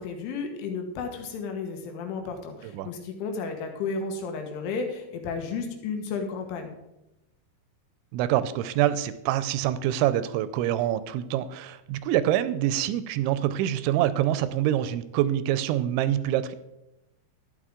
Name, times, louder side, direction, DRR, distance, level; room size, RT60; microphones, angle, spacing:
voice 1, 0.0-6.7, left 4 dB, 90° left, 5 dB, 3.8 m, -33 dB
voice 2, 8.1-16.5, right 12 dB, 85° right, 14 dB, 2.9 m, -25 dB
12.0 x 9.9 x 3.7 m, 0.90 s
omnidirectional pair, 5.4 m